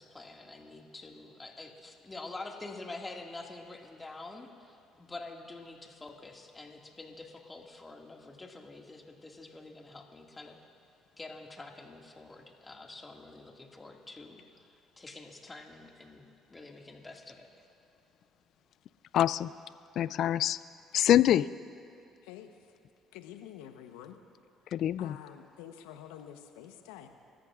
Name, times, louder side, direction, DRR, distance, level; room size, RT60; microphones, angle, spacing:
voice 1, 0.0-10.6 11.2-16.2 16.5-17.5, left 2 dB, 25° left, 1 dB, 2.1 m, -47 dB
voice 2, 19.1-19.5 20.0-20.6 20.9-21.5 24.7-25.2, left 11 dB, 65° left, 17 dB, 0.3 m, -25 dB
voice 3, 22.2-22.7 23.1-24.2 24.6-27.1, left 10 dB, 80° left, 7 dB, 1.0 m, -48 dB
29.0 x 14.0 x 2.5 m, 2.8 s
hypercardioid pair, 60°, 0 cm